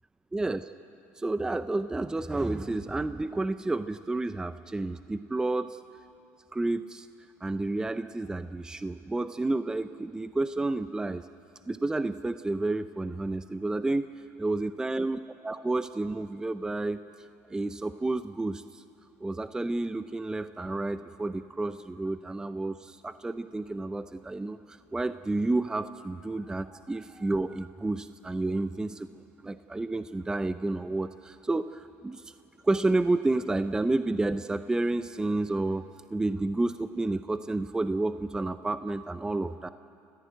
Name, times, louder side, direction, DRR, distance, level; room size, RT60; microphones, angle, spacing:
voice 1, 0.3-0.7 1.2-5.7 6.5-7.1 7.4-11.2 11.7-14.1 14.4-15.2 15.4-17.0 17.5-18.8 19.2-29.1 29.4-32.3 32.6-35.8 36.1-39.7, right 2 dB, 10° right, 11 dB, 0.6 m, -30 dB
29.5 x 14.5 x 9.2 m, 2.6 s
supercardioid pair, 100°, 6 cm